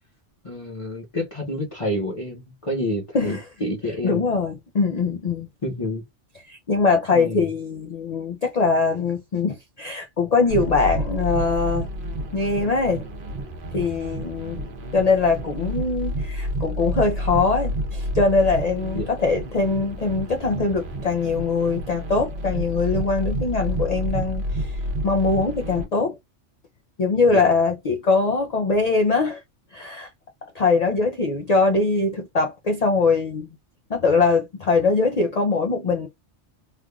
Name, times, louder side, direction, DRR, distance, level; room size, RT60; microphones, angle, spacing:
voice 1, 0.4-4.2 5.6-6.0 7.1-7.5 18.9-19.1 27.3-27.4, left 1 dB, 30° left, 1.0 m, -29 dB
voice 2, 4.0-5.5 6.5-11.9 12.3-13.0 13.7-14.6 14.9-26.2 27.0-29.4 29.7-30.1 30.5-33.5 33.9-36.1, left 4 dB, 55° left, 0.4 m, -22 dB
sound 1, 10.5-25.8, equal, 50° right, 1.0 m, -29 dB
3.3 x 2.4 x 2.2 m
omnidirectional pair, 1.2 m